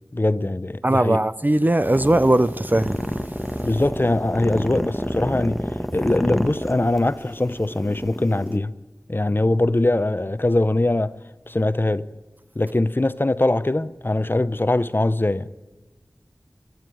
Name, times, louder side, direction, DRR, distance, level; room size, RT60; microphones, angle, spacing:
voice 1, 0.1-1.2 3.6-5.6 5.9-8.7 9.1-11.1 11.5-12.1 12.6-15.5, left 2 dB, 30° left, 0.7 m, -22 dB
voice 2, 0.8-3.0, right 1 dB, 25° right, 0.6 m, -19 dB
sound 1, 1.9-8.6, equal, ahead, 1.3 m, -29 dB
27.0 x 12.0 x 9.1 m
wide cardioid pair, 50°, 7 cm